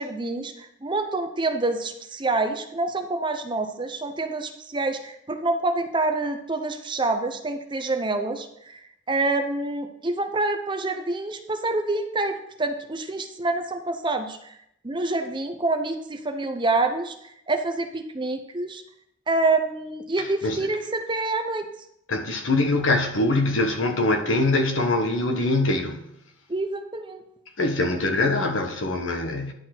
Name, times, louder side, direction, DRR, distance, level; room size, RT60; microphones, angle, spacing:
voice 1, 0.0-14.6 14.8-18.8 19.3-21.7 26.5-27.2, right 2 dB, 25° right, 0.6 m, -27 dB
voice 2, 20.2-20.7 22.1-26.1 27.6-29.5, left 2 dB, 75° left, 1.2 m, -23 dB
10.5 x 4.6 x 5.9 m
head